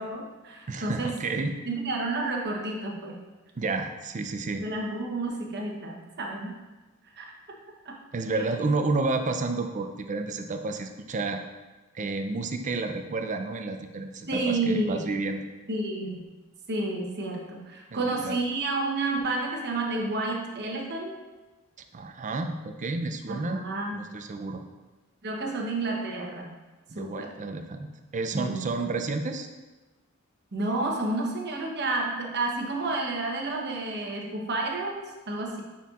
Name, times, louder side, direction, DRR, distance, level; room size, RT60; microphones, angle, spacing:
voice 1, 0.0-1.2 1.7-3.2 4.5-6.5 7.1-7.6 7.8-8.0 14.3-15.0 15.7-16.2 16.7-21.2 23.3-24.0 25.2-26.5 26.9-27.3 28.3-28.9 30.5-35.6, right 2 dB, 50° right, 0 dB, 0.9 m, -30 dB
voice 2, 0.7-1.5 3.6-4.7 8.1-11.4 11.9-15.5 17.9-18.4 21.9-23.6 23.9-24.6 26.9-29.5, right 3 dB, 35° right, 6 dB, 0.4 m, -30 dB
9.1 x 4.4 x 2.4 m, 1.2 s
head